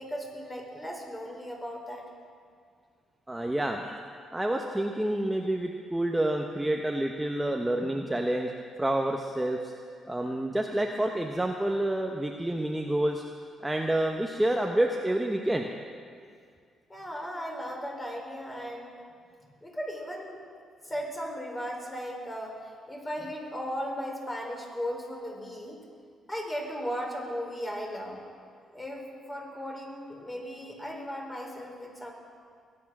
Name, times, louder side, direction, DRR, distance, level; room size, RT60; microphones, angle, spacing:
voice 1, 0.0-2.0 16.9-19.0 19.6-20.4 20.8-25.8 26.3-28.2 28.7-32.1, equal, 15° left, 0 dB, 3.8 m, -36 dB
voice 2, 3.3-4.0 4.3-8.5 8.8-9.7 10.1-13.2 13.6-15.7, right 1 dB, 10° right, 2 dB, 0.9 m, -28 dB
21.5 x 8.8 x 6.1 m, 2.2 s
cardioid pair, 90°, 0 cm